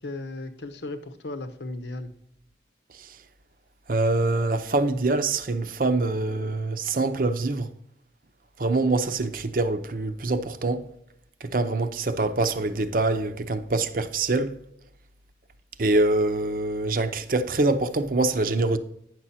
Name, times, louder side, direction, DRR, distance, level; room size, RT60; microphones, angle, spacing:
voice 1, 0.0-2.1, left 2 dB, 80° left, 0.9 m, -36 dB
voice 2, 3.9-7.7 8.6-10.9 11.4-14.5 15.8-18.8, right 2 dB, 50° right, 0.7 m, -25 dB
9.6 x 6.1 x 4.2 m
head